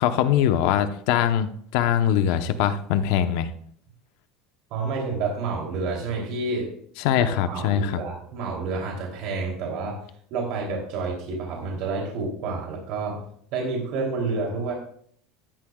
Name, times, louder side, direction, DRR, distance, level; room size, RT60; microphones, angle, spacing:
voice 1, 0.0-3.5 7.0-8.0, left 10 dB, 65° left, 9 dB, 0.9 m, -22 dB
voice 2, 4.7-6.7 7.2-10.0 10.3-13.2 13.5-14.7, right 4 dB, 55° right, 0 dB, 3.1 m, -29 dB
15.0 x 12.5 x 2.4 m, 0.62 s
cardioid pair, 160°, 0 cm